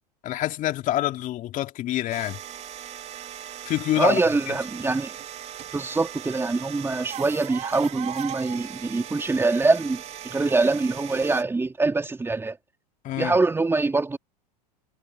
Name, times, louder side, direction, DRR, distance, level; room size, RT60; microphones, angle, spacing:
voice 1, 0.2-2.4 3.6-4.2 13.0-13.3, left 14 dB, 40° left, 2.6 m, -26 dB
sound 1, 2.1-11.4, right 10 dB, 30° right, 3.4 m, -38 dB
voice 2, 4.0-5.2 5.7-12.6 13.2-14.2, right 3 dB, 10° right, 2.5 m, -24 dB
hypercardioid pair, 100°, 21 cm